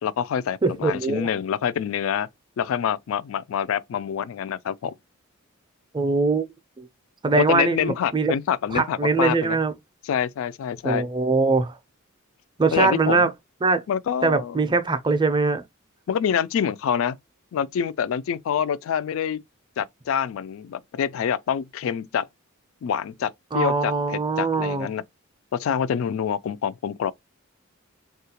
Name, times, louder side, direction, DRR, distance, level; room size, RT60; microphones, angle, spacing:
voice 1, 0.0-2.3 2.6-4.9 7.3-9.6 10.0-11.1 12.7-13.2 13.9-14.6 16.1-17.2 17.5-19.4 19.8-22.3 22.8-25.0 25.5-27.1, left 8 dB, 70° left, 0.3 m, -26 dB
voice 2, 0.6-1.3 5.9-6.5 6.8-6.9 7.2-8.3 8.7-9.7 10.8-11.7 12.6-13.3 13.6-13.8 14.2-15.6 23.5-24.9, right 3 dB, 20° right, 0.4 m, -22 dB
3.6 x 2.3 x 2.8 m
head